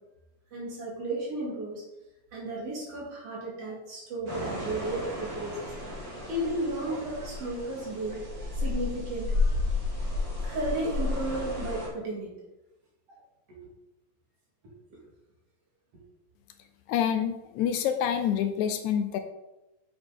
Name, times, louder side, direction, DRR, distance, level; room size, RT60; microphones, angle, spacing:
voice 1, 0.5-1.8 2.3-5.7 6.3-8.2 8.6-9.4 10.4-12.3 13.5-13.6, right 1 dB, 55° right, -3 dB, 3.0 m, -33 dB
sound 1, 4.3-11.9, left 3 dB, 40° right, 3.0 m, -32 dB
voice 2, 16.9-19.2, left 9 dB, 80° left, 8 dB, 1.9 m, -27 dB
8.1 x 6.8 x 3.8 m, 0.98 s
omnidirectional pair, 3.4 m